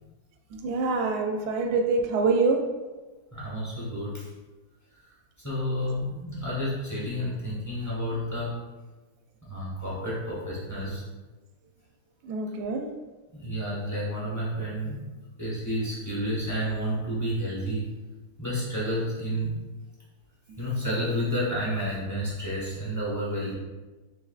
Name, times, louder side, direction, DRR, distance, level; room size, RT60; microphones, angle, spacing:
voice 1, 0.5-2.7 12.2-12.9 20.5-20.6, right 4 dB, 75° right, 3 dB, 1.0 m, -25 dB
voice 2, 3.3-4.3 5.4-8.6 9.5-11.0 13.3-15.0 15.4-17.9 18.4-19.6 20.6-23.5, equal, 15° left, -7 dB, 0.6 m, -30 dB
4.7 x 3.4 x 2.3 m, 1.2 s
omnidirectional pair, 2.1 m